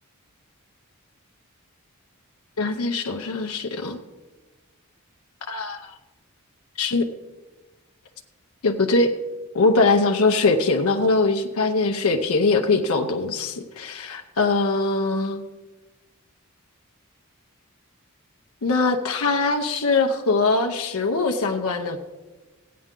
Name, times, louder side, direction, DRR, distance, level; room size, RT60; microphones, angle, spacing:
voice 1, 2.6-4.0 5.5-5.8 6.8-7.1 8.6-9.1 9.5-15.4 18.6-22.0, left 3 dB, 85° left, 4 dB, 0.7 m, -22 dB
15.5 x 9.4 x 3.7 m, 1.2 s
head